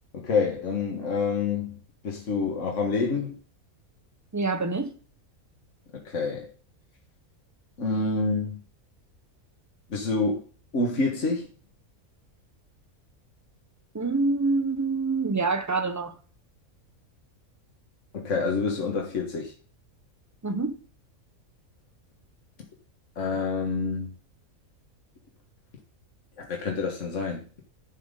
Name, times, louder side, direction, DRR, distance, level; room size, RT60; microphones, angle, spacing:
voice 1, 0.1-1.8 2.0-3.3 6.1-6.5 7.8-8.6 9.9-10.4 10.7-11.5 18.1-19.5 23.2-24.1 26.4-27.5, left 4 dB, 60° left, 1.9 m, -27 dB
voice 2, 4.3-4.9 13.9-16.2 20.4-20.8, right 3 dB, 20° right, 0.5 m, -26 dB
10.5 x 6.1 x 3.8 m
omnidirectional pair, 1.5 m